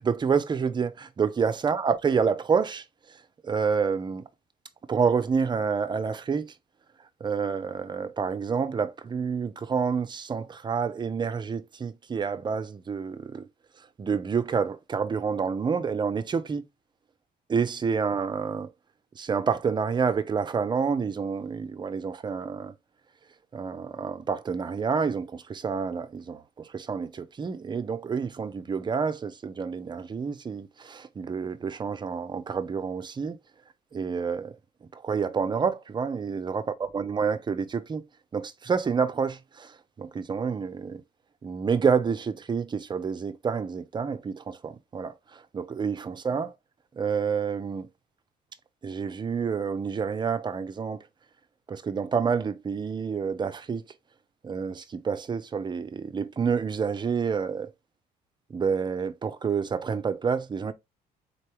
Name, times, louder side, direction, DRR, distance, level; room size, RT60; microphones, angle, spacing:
voice 1, 0.0-2.8 3.4-4.3 4.9-6.5 7.2-13.5 14.0-16.6 17.5-18.7 19.2-22.7 23.5-33.4 33.9-34.6 34.9-36.7 36.9-38.0 38.3-41.0 41.4-46.5 46.9-47.9 48.8-51.0 51.7-53.8 54.4-57.7 58.5-60.7, right 6 dB, 25° right, 0.5 m, -28 dB
4.1 x 3.3 x 2.9 m
cardioid pair, 110°, 17 cm